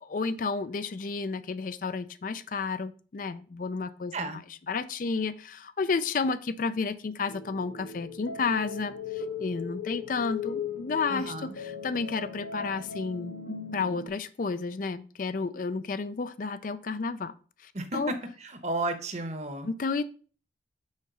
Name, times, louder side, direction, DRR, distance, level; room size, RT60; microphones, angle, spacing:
voice 1, 0.0-4.3 4.7-13.3 13.7-17.3 17.6-18.1 19.6-20.0, left 4 dB, 45° left, 13 dB, 0.4 m, -31 dB
sound 1, 7.3-14.1, left 6 dB, 85° left, 1.3 m, -38 dB
voice 2, 11.1-11.5 17.7-19.7, right 2 dB, 40° right, 9 dB, 1.0 m, -33 dB
6.4 x 4.7 x 5.4 m, 0.40 s
head